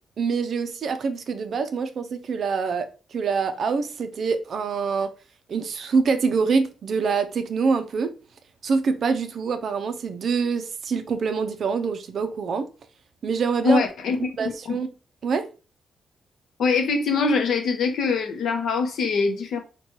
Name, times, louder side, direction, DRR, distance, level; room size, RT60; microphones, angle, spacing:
voice 1, 0.2-5.1 5.5-8.1 8.6-12.7 13.2-13.8 14.4-14.9 15.2-15.5, right 5 dB, 45° right, 0.4 m, -25 dB
voice 2, 13.6-14.2 14.7-14.8 16.6-19.6, left 4 dB, 65° left, 0.7 m, -23 dB
4.2 x 2.2 x 3.0 m
wide cardioid pair, 165°, 0 cm